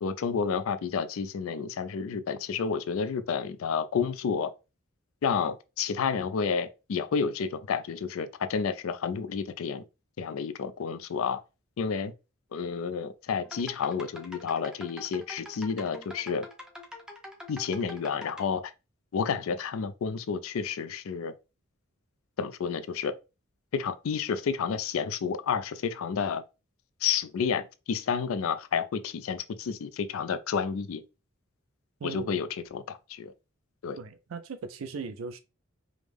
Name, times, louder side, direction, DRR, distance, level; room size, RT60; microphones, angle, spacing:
voice 1, 0.0-4.5 5.2-9.8 10.2-11.4 11.8-12.1 12.5-16.5 17.5-18.7 19.1-21.3 22.4-23.1 23.7-26.4 27.0-31.0 32.0-33.3 33.8-34.0, left 6 dB, 80° left, 0.4 m, -30 dB
sound 1, 13.4-18.4, left 1 dB, 5° right, 0.6 m, -45 dB
voice 2, 32.0-32.4 34.0-35.4, right 5 dB, 80° right, 0.4 m, -38 dB
4.9 x 2.0 x 3.4 m
head